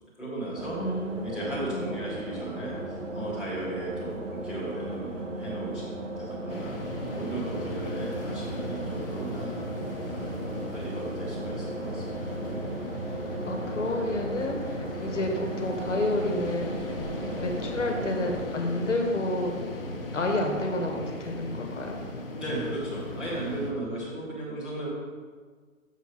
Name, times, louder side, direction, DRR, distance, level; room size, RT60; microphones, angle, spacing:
voice 1, 0.2-0.8 1.2-6.7 7.1-9.7 10.0-10.4 10.7-12.3 22.4-24.9, right 2 dB, ahead, -12 dB, 1.1 m, -36 dB
sound 1, 0.6-18.4, right 2 dB, 65° right, 1.2 m, -37 dB
voice 2, 0.8-1.9 13.4-16.7 17.4-19.5 20.1-22.0, left 1 dB, 60° left, 2 dB, 1.3 m, -30 dB
sound 2, 6.5-23.7, left 1 dB, 45° left, 1.1 m, -37 dB
6.9 x 5.8 x 4.5 m, 1.5 s
figure-of-eight pair, 140°, 40 cm